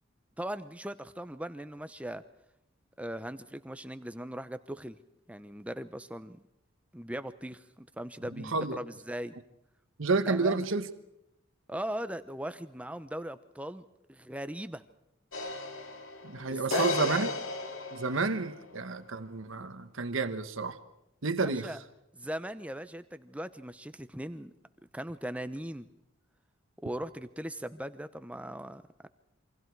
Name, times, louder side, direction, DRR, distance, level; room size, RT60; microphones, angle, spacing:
voice 1, 0.4-2.2 3.0-5.0 5.3-6.4 6.9-9.3 10.3-10.7 11.7-14.8 16.5-17.2 21.4-21.8 22.1-24.5 24.9-25.9 26.8-29.1, right 1 dB, 5° right, 0.8 m, -39 dB
voice 2, 8.4-8.8 10.0-10.9 16.2-17.3 17.9-20.8 21.2-21.7, right 3 dB, 70° right, 1.2 m, -30 dB
sound 1, 15.3-18.7, left 3 dB, 85° left, 2.4 m, -35 dB
28.0 x 24.5 x 4.7 m
head